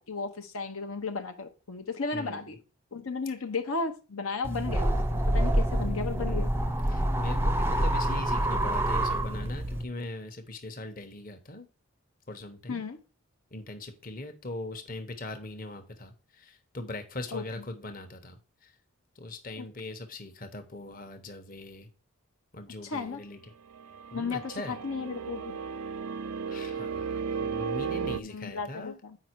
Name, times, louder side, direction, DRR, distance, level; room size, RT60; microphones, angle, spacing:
voice 1, 0.0-2.6 2.9-6.5 12.7-13.0 17.3-17.6 19.6-19.7 22.8-23.2 24.1-25.6 28.2-29.2, left 4 dB, 75° left, 5 dB, 0.9 m, -34 dB
voice 2, 2.1-2.5 6.3-6.4 6.9-11.7 12.3-12.8 13.5-18.4 19.2-21.9 22.5-23.4 24.1-24.7 26.5-29.0, left 2 dB, 40° left, 6 dB, 1.0 m, -41 dB
sound 1, 4.4-9.8, right 1 dB, 10° right, 0.5 m, -27 dB
sound 2, 23.7-28.2, right 6 dB, 80° right, 0.4 m, -35 dB
7.8 x 5.1 x 4.6 m, 0.33 s
head